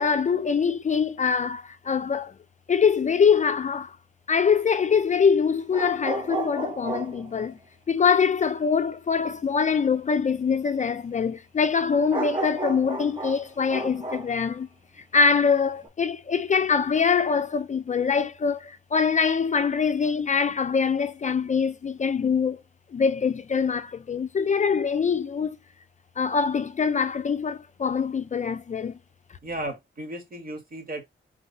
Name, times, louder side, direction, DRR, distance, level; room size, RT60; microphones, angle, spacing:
voice 1, 0.0-2.3 2.7-4.0 4.3-7.6 7.9-14.7 15.1-22.6 22.9-25.6 26.2-29.0, left 6 dB, 40° left, 0.4 m, -24 dB
sound 1, 5.7-7.5 12.1-14.4 15.8-15.9, right 2 dB, 25° right, 1.3 m, -32 dB
voice 2, 29.4-31.1, right 1 dB, 45° right, 2.1 m, -35 dB
3.9 x 3.0 x 4.0 m
wide cardioid pair, 115°, 20 cm